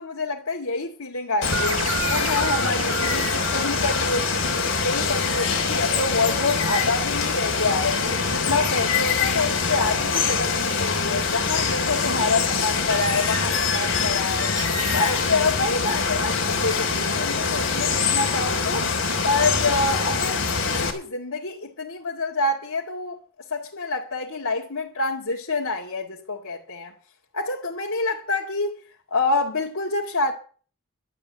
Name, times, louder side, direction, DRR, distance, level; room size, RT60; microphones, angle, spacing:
voice 1, 0.1-14.5 14.9-18.9 19.2-23.2 23.5-26.9 27.3-28.8 29.1-30.3, left 3 dB, 85° left, 2.1 m, -27 dB
Water, 1.4-20.9, left 5 dB, 60° left, 3.3 m, -24 dB
sound 1, 1.5-5.8, right 5 dB, 90° right, 2.5 m, -33 dB
12.0 x 10.0 x 7.3 m
head